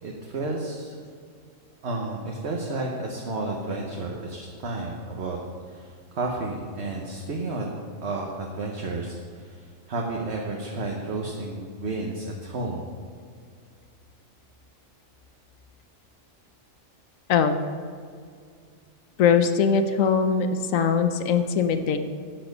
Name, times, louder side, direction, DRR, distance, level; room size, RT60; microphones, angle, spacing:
voice 1, 0.0-0.9 1.8-5.4 5.7-7.7 8.0-12.9, right 2 dB, 55° right, -1 dB, 1.4 m, -32 dB
voice 2, 19.2-22.0, left 6 dB, 85° left, 8 dB, 1.2 m, -21 dB
10.5 x 8.8 x 5.4 m, 2.1 s
omnidirectional pair, 1.3 m